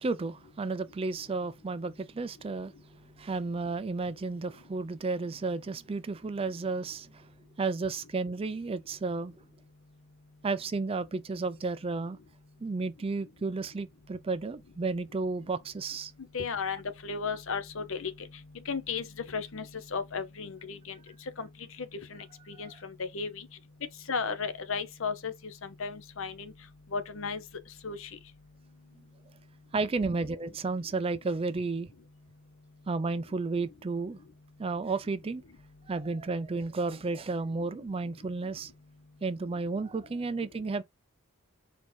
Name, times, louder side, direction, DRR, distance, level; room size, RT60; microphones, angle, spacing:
voice 1, 0.0-2.7 3.2-7.3 7.6-9.3 10.4-12.2 12.6-16.1 22.5-22.7 29.7-31.9 32.9-34.2 34.6-35.4 35.9-38.7 39.2-40.8, right 3 dB, 25° right, 0.4 m, -32 dB
voice 2, 16.3-18.1 18.7-19.1 19.3-20.9 21.4-21.5 21.8-22.2 22.6-23.5 24.1-25.3 25.6-26.5 26.9-27.4 27.8-28.1, left 5 dB, 65° left, 0.8 m, -34 dB
4.5 x 2.7 x 4.3 m
head